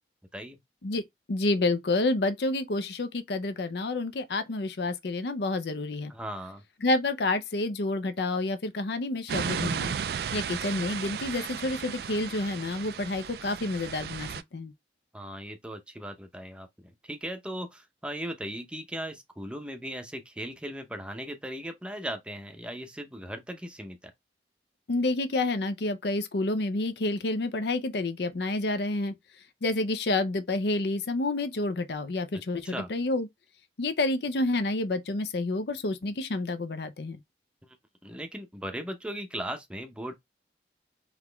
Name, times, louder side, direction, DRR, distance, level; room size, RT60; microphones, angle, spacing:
voice 1, 1.3-6.1 6.8-9.9 10.3-14.7 24.9-29.1 29.6-33.3 33.8-37.2, left 2 dB, 70° left, 0.5 m, -29 dB
voice 2, 6.1-6.6 15.1-24.1 32.6-32.9 37.6-37.8 38.0-40.1, right 1 dB, 5° right, 0.6 m, -38 dB
sound 1, 9.3-14.4, right 7 dB, 60° right, 0.3 m, -34 dB
4.0 x 3.0 x 3.3 m
head